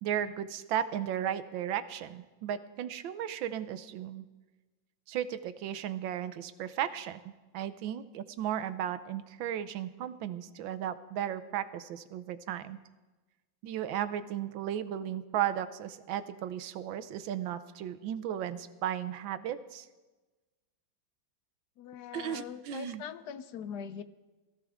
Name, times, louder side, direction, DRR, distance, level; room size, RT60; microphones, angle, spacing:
voice 1, 0.0-4.3 5.1-12.8 13.6-19.8 22.1-23.0, right 10 dB, 80° right, 11 dB, 1.4 m, -35 dB
voice 2, 21.8-24.0, left 8 dB, 65° left, 12 dB, 1.1 m, -42 dB
18.5 x 14.5 x 3.6 m, 1.2 s
omnidirectional pair, 2.1 m